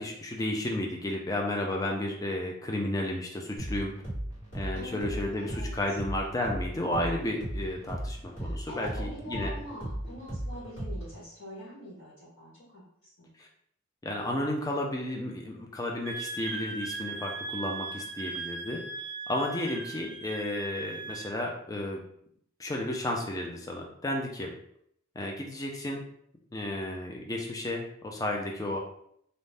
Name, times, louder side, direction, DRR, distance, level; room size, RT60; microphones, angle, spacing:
voice 1, 0.0-3.9 4.5-9.5 13.4-13.5 14.0-18.8 19.3-22.0 22.6-24.5 25.2-26.0 26.5-28.8, left 1 dB, 15° left, 0 dB, 0.4 m, -32 dB
sound 1, 3.6-11.2, right 1 dB, 45° left, 1.4 m, -37 dB
voice 2, 4.7-5.8 8.4-12.8 13.2-13.3, left 1 dB, 65° left, -8 dB, 1.1 m, -44 dB
Wind instrument woodwind instrument, 16.0-21.4, right 3 dB, 55° right, 0.3 m, -38 dB
2.6 x 2.0 x 3.2 m, 0.68 s
head